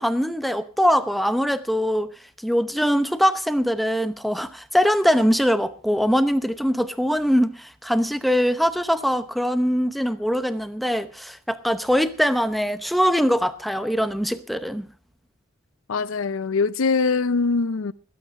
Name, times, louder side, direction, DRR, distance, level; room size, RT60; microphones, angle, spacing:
voice 1, 0.0-2.1 2.4-14.9, equal, ahead, 0.8 m, -22 dB
voice 2, 15.9-17.9, left 4 dB, 85° left, 0.6 m, -22 dB
20.0 x 8.7 x 5.3 m
head